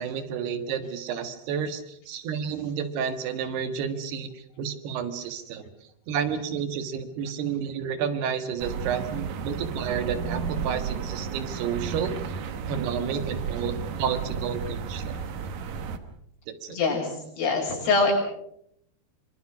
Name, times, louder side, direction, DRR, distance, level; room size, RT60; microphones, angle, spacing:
voice 1, 0.0-5.7 6.1-12.4 12.7-15.2 16.5-16.8, right 7 dB, 80° right, 9 dB, 3.7 m, -31 dB
sound 1, 8.6-16.0, right 6 dB, 60° right, 2.2 m, -33 dB
voice 2, 16.7-18.1, left 4 dB, 90° left, 0 dB, 8.3 m, -24 dB
24.5 x 24.5 x 6.1 m, 0.75 s
omnidirectional pair, 4.6 m